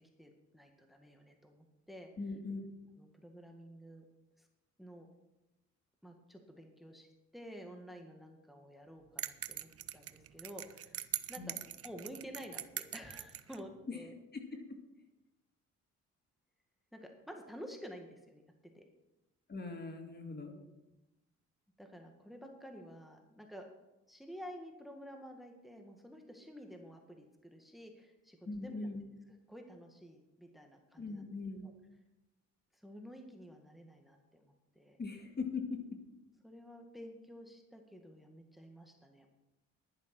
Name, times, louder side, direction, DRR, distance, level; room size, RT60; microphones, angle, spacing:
voice 1, 0.2-2.1 3.0-4.0 4.4-4.5 4.8-5.1 6.0-11.0 11.3-14.1 16.9-18.4 18.7-18.8 20.5-20.7 21.8-23.7 24.1-28.9 29.5-31.3 31.6-31.7 32.7-35.0 36.4-39.4, equal, ahead, 3 dB, 1.8 m, -51 dB
voice 2, 2.2-2.6 11.4-11.5 13.9-14.0 14.3-14.6 19.5-20.6 28.5-29.1 31.0-31.7 35.0-36.0, left 4 dB, 35° left, 4 dB, 2.2 m, -40 dB
sound 1, 9.2-13.6, right 10 dB, 50° right, 0.7 m, -42 dB
11.0 x 10.5 x 6.1 m, 0.98 s
cardioid pair, 90°, 30 cm